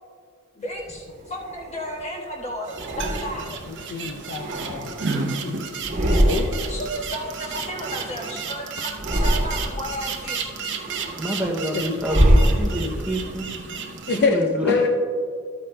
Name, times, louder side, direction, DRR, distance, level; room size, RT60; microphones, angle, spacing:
voice 1, 0.5-3.5 6.7-10.6, equal, 30° left, -1 dB, 1.4 m, -33 dB
sound 1, 0.8-2.1 2.7-3.7 4.1-5.4 5.7-6.8 7.1-8.5 8.9-9.9 10.4-13.1, equal, 30° right, 1.2 m, -24 dB
sound 2, 2.6-14.3, right 5 dB, 55° right, 0.7 m, -33 dB
voice 2, 3.9-5.6 6.3-6.5 14.1-14.9, left 4 dB, 50° left, 3 dB, 0.5 m, -25 dB
voice 3, 11.2-13.5 14.1-14.7, equal, 5° right, -1 dB, 0.6 m, -27 dB
13.0 x 8.8 x 2.2 m, 2.1 s
head